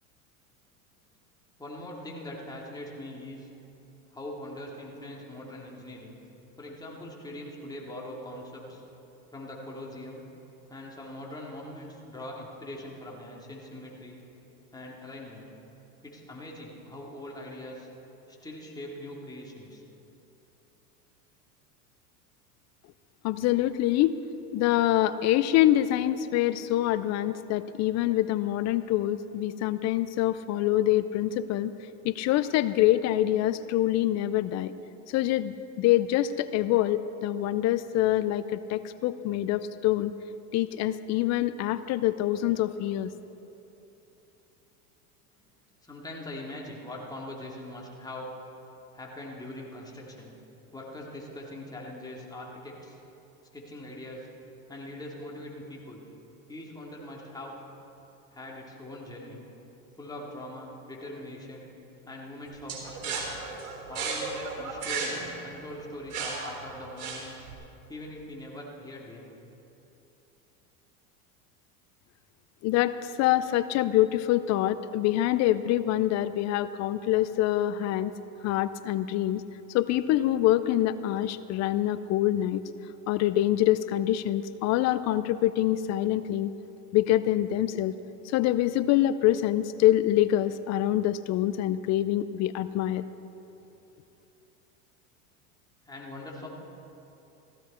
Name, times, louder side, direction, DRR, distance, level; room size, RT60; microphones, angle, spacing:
voice 1, 1.6-3.5 4.1-6.2 6.6-8.8 9.3-10.2 10.7-14.2 14.7-15.5 16.0-17.9 18.4-19.8 45.8-48.3 48.9-50.3 50.7-53.0 53.5-54.3 54.7-56.0 56.5-57.6 58.3-59.4 60.0-61.7 62.0-63.4 63.9-67.3 67.9-69.3 95.8-96.5, left 1 dB, 10° left, -3 dB, 2.8 m, -42 dB
voice 2, 23.2-24.2 24.5-31.7 32.0-34.7 35.1-40.1 40.5-43.1 72.6-78.1 78.4-79.4 79.7-82.6 83.1-86.5 86.9-87.9 88.2-93.1, left 13 dB, 40° left, 14 dB, 0.5 m, -25 dB
sound 1, 62.7-67.5, right 4 dB, 75° right, 3.8 m, -34 dB
15.5 x 15.5 x 4.4 m, 3.0 s
hypercardioid pair, 95°, 43 cm